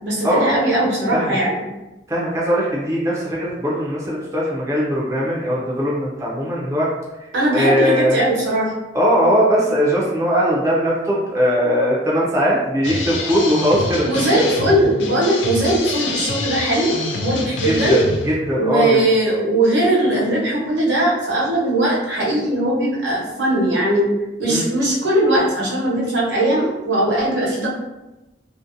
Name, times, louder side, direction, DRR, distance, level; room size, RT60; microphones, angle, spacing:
voice 1, 0.0-1.6 7.3-8.7 14.0-18.0 18.5-24.1 24.4-27.7, right 1 dB, 80° right, -5 dB, 0.8 m, -19 dB
voice 2, 2.1-6.9 7.2-8.2 8.9-14.4 17.6-19.0 24.5-24.7, equal, 15° right, -5 dB, 0.4 m, -20 dB
sound 1, 12.8-18.4, left 2 dB, 85° left, 0.4 m, -26 dB
2.6 x 2.1 x 2.5 m, 1.0 s
head